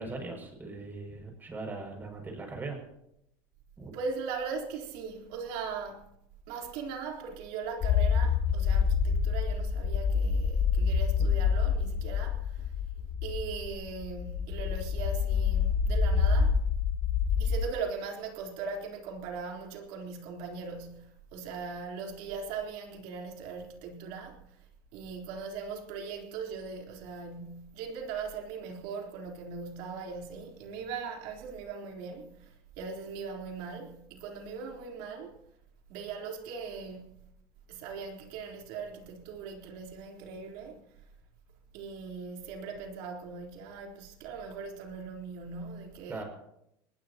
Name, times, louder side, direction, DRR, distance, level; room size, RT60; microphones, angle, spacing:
voice 1, 0.0-2.8 3.8-3.9 46.1-46.2, right 3 dB, 15° right, 6.5 m, -39 dB
voice 2, 3.9-6.1 6.5-12.7 13.2-16.6 17.4-24.6 24.9-35.3 35.9-37.2 37.7-40.8 41.7-46.2, right 5 dB, 65° right, 3.9 m, -39 dB
sound 1, 7.8-17.7, left 6 dB, 30° left, 0.9 m, -27 dB
24.5 x 20.0 x 3.0 m
supercardioid pair, 135°, 11 cm